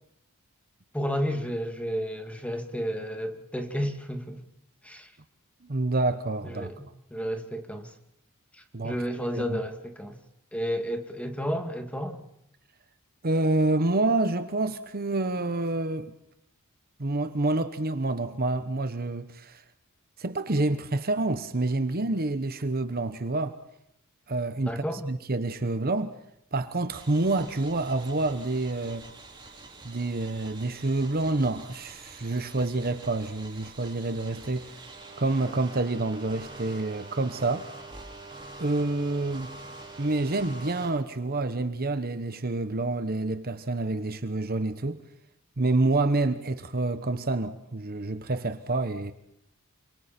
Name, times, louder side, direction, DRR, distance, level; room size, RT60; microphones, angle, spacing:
voice 1, 0.9-4.4 4.8-5.1 6.4-6.7 7.1-7.9 8.8-10.2 10.5-12.2 24.7-25.0, equal, 5° left, 2.2 m, -31 dB
voice 2, 5.6-6.7 8.7-9.0 9.3-9.6 13.2-16.1 17.0-19.6 20.2-23.6 24.3-26.1 26.5-29.1 29.8-34.7 35.2-37.7 38.6-39.5 40.0-45.0 45.6-49.1, right 2 dB, 45° right, 1.1 m, -28 dB
sound 1, 26.9-40.9, right 3 dB, 20° right, 4.6 m, -45 dB
28.0 x 25.5 x 4.4 m
head